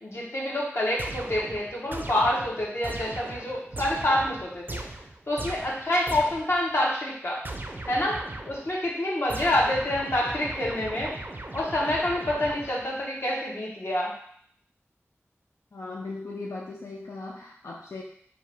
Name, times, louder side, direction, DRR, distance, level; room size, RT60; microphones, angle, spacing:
voice 1, 0.0-4.8 5.3-7.4 7.9-8.2 8.5-11.1 11.5-14.2, left 1 dB, 55° left, -3 dB, 1.2 m, -27 dB
sound 1, 1.0-6.6 7.4-8.7 9.3-13.0, right 2 dB, 40° right, 0.4 m, -38 dB
voice 2, 15.7-18.0, left 3 dB, 85° left, -2 dB, 0.4 m, -38 dB
4.6 x 2.5 x 3.5 m, 0.62 s
wide cardioid pair, 55°, 5 cm